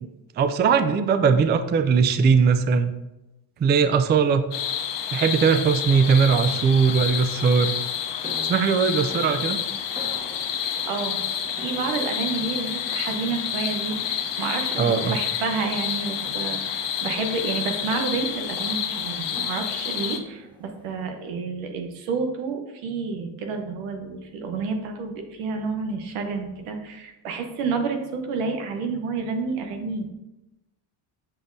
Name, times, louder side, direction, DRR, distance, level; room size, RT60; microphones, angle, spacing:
voice 1, 0.4-2.9 3.6-4.5 5.1-7.7 8.4-9.6 14.8-15.2, right 6 dB, 25° right, 10 dB, 0.3 m, -20 dB
sound 1, 4.5-20.2, left 8 dB, 60° left, 0.8 m, -29 dB
sound 2, 7.4-21.2, equal, 10° right, 1.3 m, -45 dB
voice 2, 10.6-11.2 11.5-30.1, right 4 dB, 90° right, 5 dB, 1.0 m, -30 dB
7.3 x 5.1 x 2.6 m, 0.97 s
cardioid pair, 85°, 49 cm